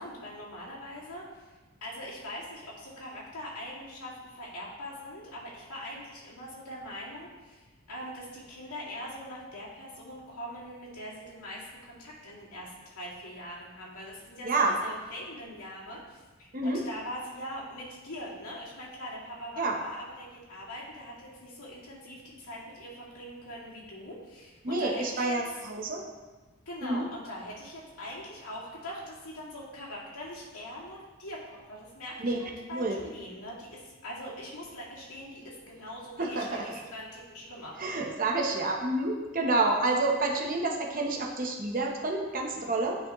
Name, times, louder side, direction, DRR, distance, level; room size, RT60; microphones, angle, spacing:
voice 1, 0.0-1.5 1.8-25.4 26.7-37.8 42.5-42.6, equal, 90° left, -6 dB, 2.2 m, -42 dB
voice 2, 14.4-14.7 16.5-16.8 19.6-19.8 24.6-26.0 26.8-27.0 32.2-33.0 36.2-36.8 37.8-43.0, right 2 dB, 40° right, 1 dB, 0.8 m, -29 dB
10.0 x 4.9 x 3.0 m, 1.2 s
head